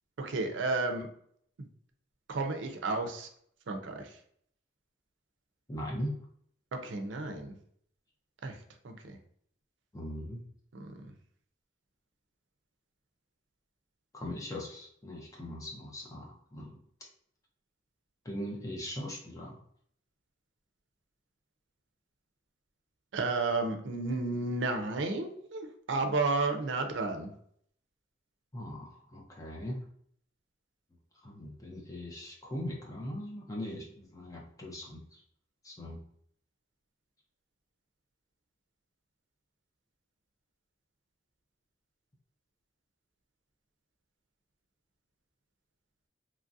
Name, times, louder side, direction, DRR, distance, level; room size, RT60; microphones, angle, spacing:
voice 1, 0.2-1.1 1.6-1.7 2.3-3.3 3.7-4.2 6.7-7.5 8.4-9.2 10.7-11.1 23.1-27.3, right 3 dB, 75° right, 5 dB, 0.5 m, -32 dB
voice 2, 5.7-6.1 9.9-10.4 14.1-16.8 18.2-19.6 28.5-29.8 31.2-35.2 35.6-36.0, left 1 dB, 15° left, -2 dB, 0.5 m, -40 dB
3.0 x 2.4 x 2.6 m, 0.64 s
head